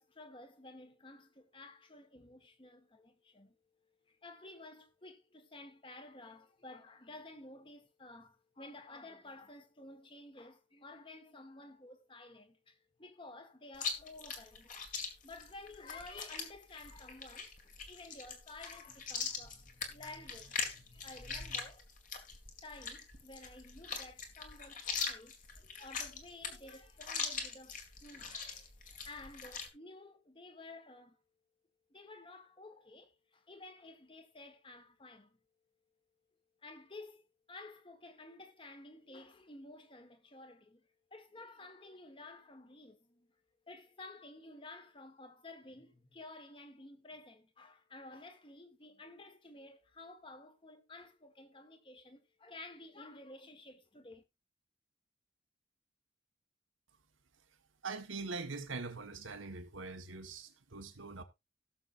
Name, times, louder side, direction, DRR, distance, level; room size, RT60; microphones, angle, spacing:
voice 1, 0.0-3.5 4.1-14.9 15.2-17.5 17.9-21.9 22.6-31.2 31.9-35.4 36.6-37.2 37.5-40.8 41.1-43.3 43.7-54.2, left 2 dB, 25° left, 1.5 m, -53 dB
Chewing mastication, 13.7-29.7, left 5 dB, 40° left, 2.2 m, -42 dB
voice 2, 57.8-61.2, right 4 dB, 90° right, 1.5 m, -43 dB
17.5 x 7.1 x 2.6 m
head